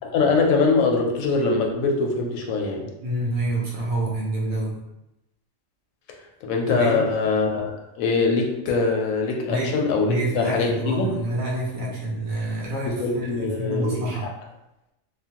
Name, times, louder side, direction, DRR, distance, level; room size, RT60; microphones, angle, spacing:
voice 1, 0.0-2.9 6.4-11.2 12.9-14.3, left 4 dB, 85° left, 1 dB, 1.0 m, -23 dB
voice 2, 3.0-4.8 6.7-7.1 9.5-9.7 10.1-14.3, right 1 dB, 60° right, -5 dB, 1.0 m, -27 dB
2.9 x 2.2 x 2.8 m, 0.91 s
omnidirectional pair, 1.4 m